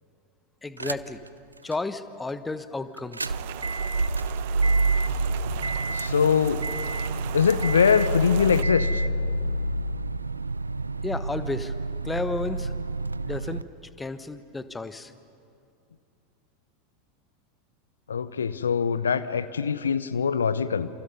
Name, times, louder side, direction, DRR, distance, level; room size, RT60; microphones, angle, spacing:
voice 1, 0.6-1.2 1.6-3.4 11.0-11.7 12.0-12.7 13.2-13.6 14.0-15.1, left 3 dB, 10° left, 12 dB, 1.1 m, -32 dB
sound 1, 0.8-1.3 1.7-1.8 3.0-13.6, right 2 dB, 85° right, 0.5 m, -28 dB
Rain, 3.3-8.6, right 13 dB, 55° right, 1.0 m, -38 dB
voice 2, 5.9-6.6 7.3-9.0 18.1-20.9, left 6 dB, 75° left, 15 dB, 0.7 m, -23 dB
29.0 x 28.0 x 5.5 m, 2.5 s
figure-of-eight pair, 85°, 0 cm